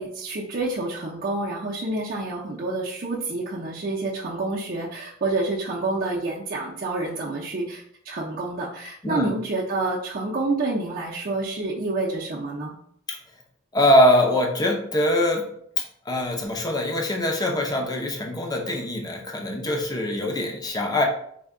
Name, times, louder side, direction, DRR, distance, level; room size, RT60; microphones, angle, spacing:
voice 1, 0.0-12.7, right 2 dB, 45° right, -5 dB, 0.5 m, -28 dB
voice 2, 13.7-15.4 16.1-21.0, left 1 dB, 20° left, 1 dB, 0.5 m, -22 dB
3.4 x 2.2 x 3.6 m, 0.66 s
head